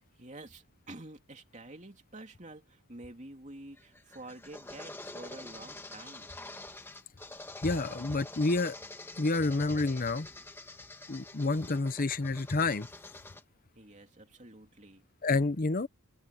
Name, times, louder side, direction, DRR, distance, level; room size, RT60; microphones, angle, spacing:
voice 1, 0.2-6.3 13.7-15.0, right 2 dB, 30° right, 3.0 m, -49 dB
sound 1, 3.8-13.4, left 2 dB, 10° left, 1.4 m, -46 dB
voice 2, 7.6-8.7 9.2-10.3 11.1-12.9 15.2-15.9, left 3 dB, 40° left, 0.7 m, -29 dB
open air
head